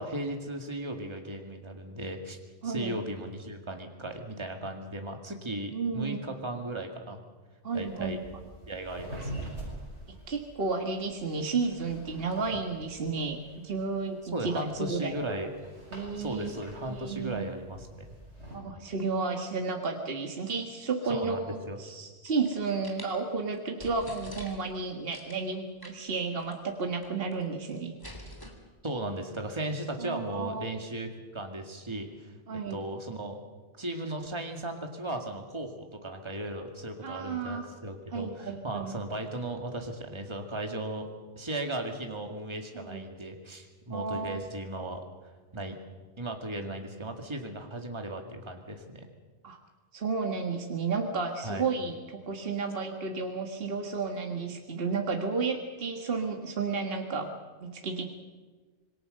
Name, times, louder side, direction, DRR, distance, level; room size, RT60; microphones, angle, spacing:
voice 1, 0.0-2.4 2.6-7.2 7.7-8.2 8.7-9.5 14.3-15.5 16.2-18.1 21.1-21.8 28.8-32.3 32.7-33.4 33.8-35.8 36.0-41.1 41.4-45.1 45.5-45.8 46.2-49.0 51.4-51.6, right 1 dB, 25° right, 3 dB, 2.2 m, -36 dB
voice 2, 2.6-3.0 5.7-6.2 7.6-8.4 10.1-15.4 15.9-17.5 18.5-27.9 30.0-30.7 32.5-32.8 37.0-37.7 38.1-38.9 42.7-43.1 43.9-44.4 46.6-46.8 49.4-49.6 49.9-57.3 57.6-58.1, right 4 dB, 55° right, 3 dB, 1.8 m, -32 dB
sound 1, 7.7-18.6, right 1 dB, 70° right, 7.4 m, -46 dB
sound 2, 22.0-23.1 23.5-23.6 23.8-24.7 25.1-25.4 25.8-26.1 26.4-26.5 26.8-27.4 27.7-28.5, equal, 15° left, 3.4 m, -46 dB
26.5 x 21.5 x 6.6 m, 1.3 s
omnidirectional pair, 1.2 m